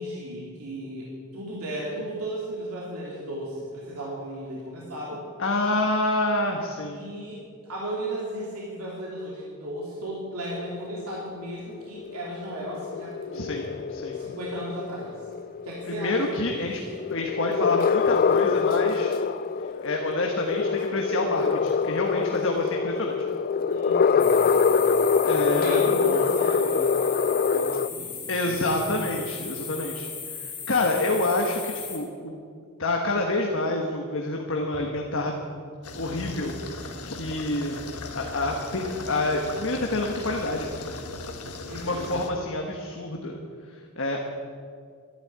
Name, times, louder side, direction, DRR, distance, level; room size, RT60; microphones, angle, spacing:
voice 1, 0.0-5.2 6.9-13.6 14.1-15.2 15.6-16.7 23.7-24.9 25.5-29.2 41.6-42.1, right 1 dB, 80° right, -4 dB, 3.0 m, -35 dB
voice 2, 5.4-7.0 13.3-14.2 15.9-16.8 17.1-19.1 19.8-23.2 25.2-25.8 28.3-32.4 32.8-35.3 35.9-37.8 38.1-40.7 41.7-43.4 43.7-44.2, left 2 dB, 60° left, 1 dB, 1.4 m, -28 dB
sound 1, 10.5-27.9, left 5 dB, 40° left, 0.3 m, -25 dB
sound 2, 24.2-32.0, left 6 dB, 20° left, 2.3 m, -37 dB
sound 3, 35.8-42.3, left 3 dB, 90° left, 1.6 m, -38 dB
12.5 x 12.0 x 8.8 m, 2.1 s
head